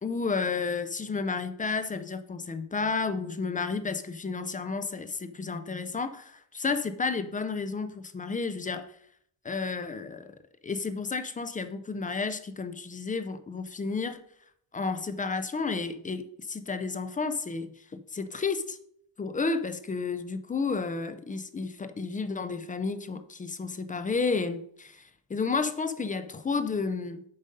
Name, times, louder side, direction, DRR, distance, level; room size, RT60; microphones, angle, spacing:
voice 1, 0.0-8.9 9.4-10.3 10.6-14.2 14.7-17.7 18.1-18.8 19.2-25.0 25.3-27.2, left 4 dB, 20° left, 0.3 m, -31 dB
7.8 x 5.1 x 5.2 m
cardioid pair, 155°, 48 cm